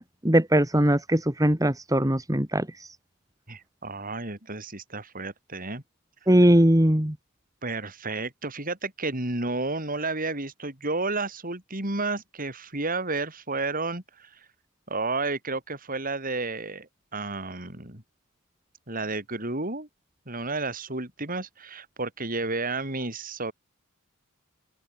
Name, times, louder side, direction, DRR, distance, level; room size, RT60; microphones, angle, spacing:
voice 1, 0.0-2.9 6.3-7.1, right 1 dB, 15° right, 2.4 m, -21 dB
voice 2, 3.5-5.8 7.6-14.3 14.9-18.0 18.9-19.9 20.3-23.5, right 3 dB, 40° right, 5.6 m, -31 dB
open air
head